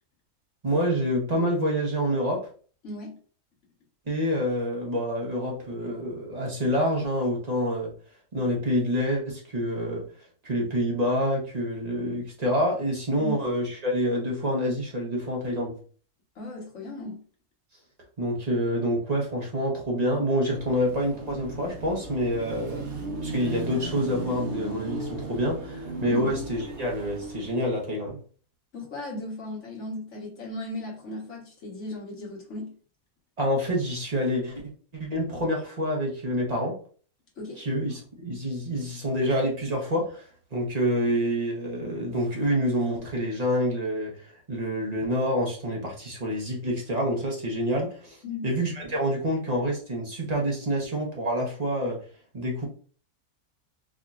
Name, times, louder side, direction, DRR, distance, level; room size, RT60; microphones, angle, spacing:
voice 1, 0.6-2.5 4.1-7.9 8.3-10.0 10.4-15.8 18.2-22.8 23.2-28.2 33.4-34.6 34.9-36.8 37.6-40.2 40.5-48.2 48.4-52.0 52.3-52.7, equal, 30° right, -1 dB, 1.0 m, -27 dB
voice 2, 2.8-3.2 13.2-13.3 16.3-17.2 26.1-26.3 28.7-32.7 37.4-37.6 48.2-48.5, left 1 dB, 55° left, -1 dB, 1.5 m, -36 dB
Car passing by / Traffic noise roadway noise / Engine, 20.5-27.8, right 2 dB, 55° right, 1.0 m, -36 dB
4.9 x 2.7 x 2.4 m, 0.43 s
omnidirectional pair, 1.5 m